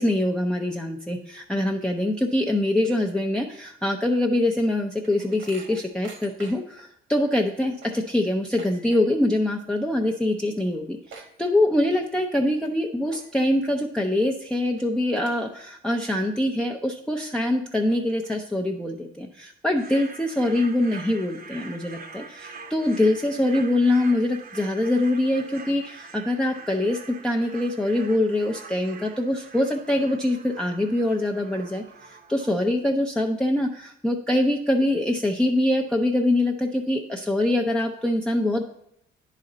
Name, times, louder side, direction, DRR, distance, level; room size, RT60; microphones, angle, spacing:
voice 1, 0.0-38.6, left 1 dB, 5° left, 1 dB, 0.5 m, -24 dB
sound 1, 4.4-6.8 7.2-7.3 7.6-9.3 9.6-10.0 10.3-10.4 10.6-12.0 12.5-12.7 13.1-13.6 14.1-14.2 14.8-14.9 15.2-16.0 16.4-16.5 17.2-17.3 17.7-18.6, right 4 dB, 75° right, 1.2 m, -47 dB
sound 2, 19.8-32.5, right 4 dB, 50° right, 0.8 m, -44 dB
9.7 x 4.2 x 3.8 m, 0.74 s
cardioid pair, 90°, 20 cm